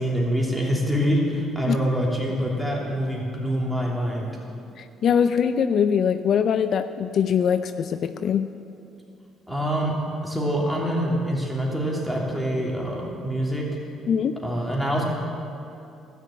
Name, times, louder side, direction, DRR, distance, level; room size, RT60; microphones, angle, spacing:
voice 1, 0.0-4.3 9.5-9.9 10.2-13.7 14.4-15.0, equal, 5° right, -3 dB, 3.0 m, -25 dB
voice 2, 4.8-8.5 14.1-14.3, left 7 dB, 60° left, 10 dB, 0.4 m, -22 dB
12.5 x 6.9 x 8.5 m, 2.7 s
cardioid pair, 90°, 0 cm